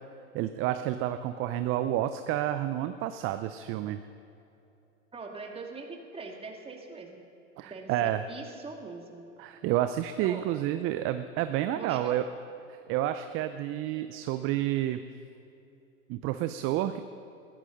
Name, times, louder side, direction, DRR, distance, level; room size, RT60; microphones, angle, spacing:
voice 1, 0.3-4.0 7.6-8.2 9.4-12.2 12.9-15.0 16.1-17.0, right 13 dB, 35° right, 10 dB, 0.6 m, -30 dB
voice 2, 5.1-7.2 7.7-9.3 10.2-10.6 11.7-12.2, right 3 dB, 15° right, 2 dB, 2.1 m, -42 dB
20.5 x 15.0 x 3.9 m, 2.7 s
hypercardioid pair, 95°, 39 cm